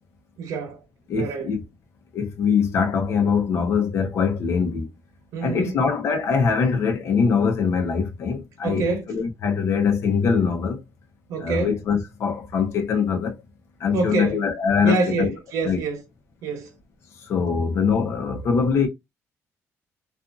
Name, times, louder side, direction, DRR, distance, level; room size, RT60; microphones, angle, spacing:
voice 1, 0.4-0.8 1.1-1.5 5.3-5.8 8.6-9.1 11.3-11.8 13.9-14.4 14.8-16.0 16.4-16.7, right 4 dB, 80° right, 0.9 m, -26 dB
voice 2, 1.1-1.6 2.1-4.9 5.4-10.8 11.4-13.4 13.8-15.3 15.6-15.8 17.2-18.9, left 6 dB, 55° left, 0.9 m, -23 dB
2.6 x 2.5 x 2.4 m
cardioid pair, 170°, 6 cm